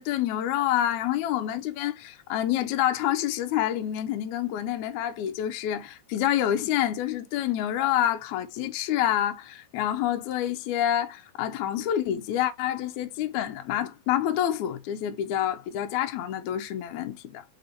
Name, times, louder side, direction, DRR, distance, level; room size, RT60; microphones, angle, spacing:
voice 1, 0.0-17.4, left 11 dB, 90° left, 1.7 m, -27 dB
5.3 x 3.5 x 2.7 m
omnidirectional pair, 4.0 m